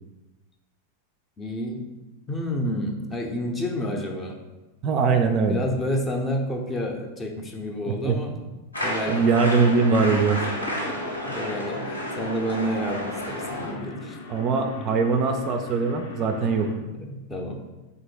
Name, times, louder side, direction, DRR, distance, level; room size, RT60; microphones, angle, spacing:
voice 1, 1.4-1.8 2.3-4.4 5.5-8.4 8.8-9.2 10.4-10.5 10.8-14.2 16.6-17.7, equal, 15° left, 3 dB, 0.6 m, -30 dB
voice 2, 4.8-5.6 8.0-8.2 9.1-10.4 14.3-16.7, right 4 dB, 35° right, 5 dB, 0.3 m, -21 dB
sound 1, 8.7-13.7, equal, 85° left, 0.8 m, -31 dB
sound 2, 8.8-16.7, left 1 dB, 50° left, 0.6 m, -41 dB
3.7 x 2.7 x 4.4 m, 1.1 s
figure-of-eight pair, 90°, 0 cm